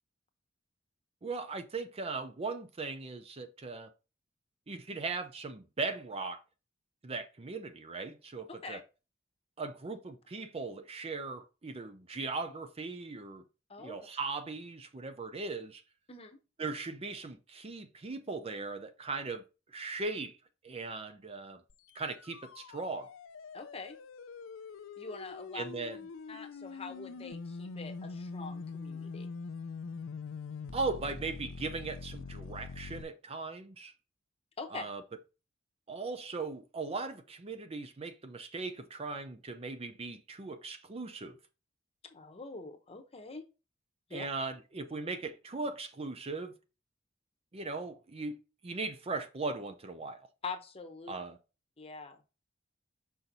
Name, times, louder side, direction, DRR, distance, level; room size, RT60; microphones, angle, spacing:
voice 1, 1.2-3.9 4.7-6.4 7.0-8.8 9.6-13.4 13.8-15.8 16.6-19.4 19.7-20.4 20.6-21.6 21.9-23.1 25.5-26.0 30.7-33.9 34.7-35.0 35.9-41.4 44.1-46.6 47.5-50.3 51.1-51.4, right 3 dB, 30° right, 0.5 m, -38 dB
voice 2, 8.5-8.8 13.7-14.1 16.1-16.4 23.5-24.0 25.0-25.6 26.3-29.3 34.6-34.8 42.0-43.4 44.1-44.3 50.4-51.2 51.8-52.2, left 4 dB, 30° left, 0.9 m, -44 dB
sound 1, 21.7-33.0, left 4 dB, 70° left, 0.4 m, -44 dB
5.4 x 4.4 x 4.0 m
head